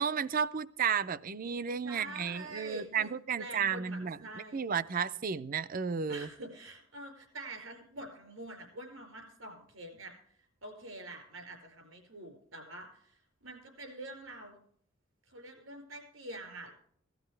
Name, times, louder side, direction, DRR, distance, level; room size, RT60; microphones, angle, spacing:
voice 1, 0.0-4.2 4.5-6.3, right 6 dB, 45° right, 0.5 m, -33 dB
voice 2, 1.8-3.1 3.3-4.6 6.1-14.6 15.3-16.7, right 1 dB, 90° right, 4.9 m, -46 dB
17.5 x 13.0 x 3.3 m
head